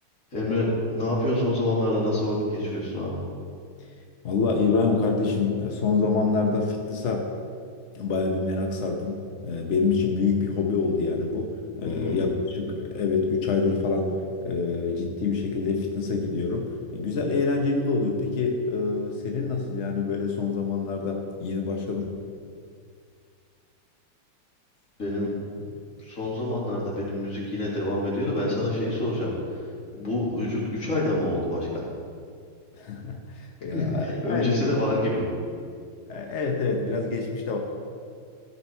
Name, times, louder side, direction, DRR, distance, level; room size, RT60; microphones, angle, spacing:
voice 1, 0.3-3.2 11.8-12.2 25.0-25.3 26.0-29.3 29.9-31.7 33.7-35.4, left 1 dB, 40° left, -5 dB, 2.7 m, -27 dB
voice 2, 4.2-7.3 7.9-22.1 32.8-34.7 36.1-37.6, left 4 dB, 60° left, 2 dB, 0.7 m, -26 dB
14.0 x 5.9 x 4.5 m, 2.2 s
omnidirectional pair, 2.3 m